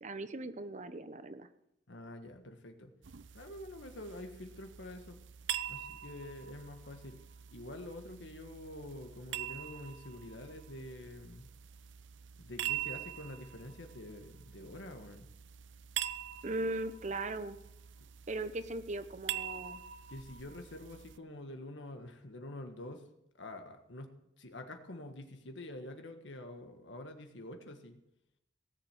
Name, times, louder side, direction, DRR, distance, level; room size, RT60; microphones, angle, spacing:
voice 1, 0.0-1.5 16.4-17.6 18.3-19.8, right 2 dB, 40° right, 12 dB, 0.9 m, -38 dB
voice 2, 1.9-2.9 3.3-5.2 5.7-7.2 7.5-11.5 12.4-15.3 20.1-23.0 23.4-28.0, left 1 dB, 75° left, 5 dB, 1.6 m, -47 dB
sound 1, 3.0-21.2, right 11 dB, 90° right, 0.6 m, -44 dB
18.0 x 7.5 x 8.0 m, 0.84 s
head